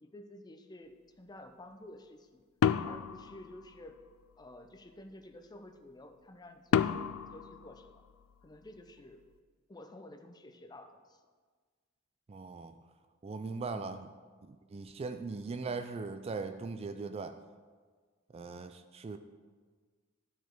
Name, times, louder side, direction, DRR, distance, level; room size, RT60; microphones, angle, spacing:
voice 1, 0.0-2.4 2.8-4.0 4.4-8.0 8.4-9.2 9.7-11.2 13.7-14.0, left 1 dB, 20° left, 7 dB, 0.5 m, -52 dB
sound 1, 2.6-4.1 6.7-8.5, left 8 dB, 80° left, 0.3 m, -32 dB
voice 2, 12.3-12.7 13.2-14.1 14.5-17.4 18.3-19.2, right 4 dB, 30° right, 9 dB, 0.3 m, -39 dB
12.0 x 5.0 x 4.5 m, 1.5 s
head